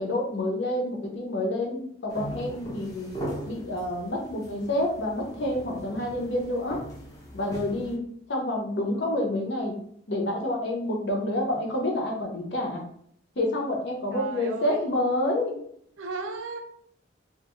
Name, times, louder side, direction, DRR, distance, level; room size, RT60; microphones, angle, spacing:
voice 1, 0.0-3.1 3.5-6.8 7.3-8.0 8.3-9.8 10.1-12.8 13.4-15.6, left 1 dB, 60° left, 0 dB, 0.7 m, -28 dB
sound 1, 2.1-7.9, right 1 dB, 20° left, 0.6 m, -39 dB
voice 2, 8.9-9.3 14.1-14.8 16.0-16.6, right 4 dB, 80° right, 3 dB, 0.5 m, -36 dB
2.5 x 2.3 x 3.0 m, 0.67 s
head